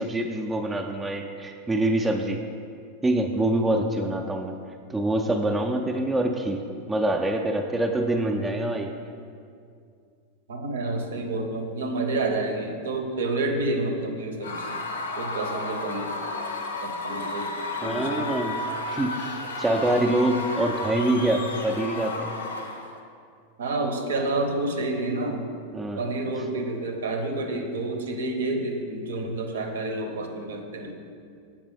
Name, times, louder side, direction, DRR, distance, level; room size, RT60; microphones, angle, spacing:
voice 1, 0.0-2.4 3.0-4.6 4.9-6.6 6.9-8.9 17.8-18.6 18.9-22.3 25.7-26.1, right 1 dB, 10° right, 3 dB, 0.4 m, -25 dB
voice 2, 10.5-14.8 15.1-16.2 16.8-17.5 17.8-18.3 23.6-25.5 25.9-30.9, right 2 dB, 65° right, 4 dB, 0.7 m, -29 dB
Screaming / Cheering / Crowd, 14.4-23.0, left 2 dB, 65° left, 0.5 m, -32 dB
7.2 x 5.1 x 3.5 m, 2.3 s
figure-of-eight pair, 90°, 0 cm